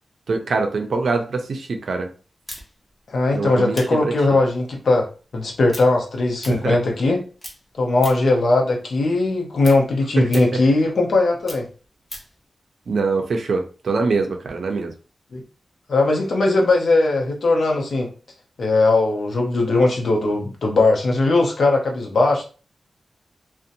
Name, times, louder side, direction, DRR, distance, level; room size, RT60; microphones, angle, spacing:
voice 1, 0.3-2.1 3.3-4.4 6.5-6.8 10.3-10.6 12.9-14.9, right 4 dB, 70° right, 5 dB, 0.5 m, -24 dB
sound 1, 2.5-7.1 7.4-8.4 8.8-12.4, equal, 15° left, 0.8 m, -40 dB
voice 2, 3.1-5.1 5.3-7.2 7.8-11.7 15.3-15.4 15.9-18.1 18.6-22.5, left 2 dB, 70° left, 1 dB, 0.7 m, -19 dB
2.7 x 2.1 x 2.5 m, 0.36 s
wide cardioid pair, 115°, 0 cm